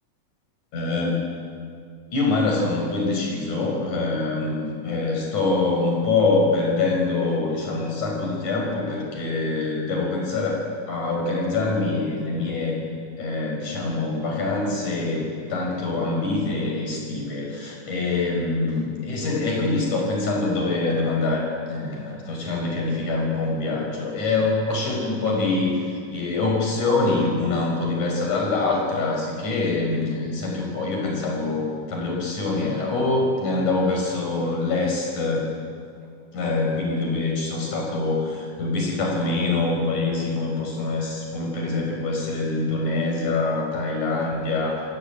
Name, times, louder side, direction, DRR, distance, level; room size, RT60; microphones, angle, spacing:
voice 1, 0.7-1.2 2.1-12.8 13.2-35.5 36.3-44.8, left 3 dB, 55° left, 0 dB, 6.9 m, -24 dB
28.0 x 16.5 x 9.1 m, 2.3 s
omnidirectional pair, 4.2 m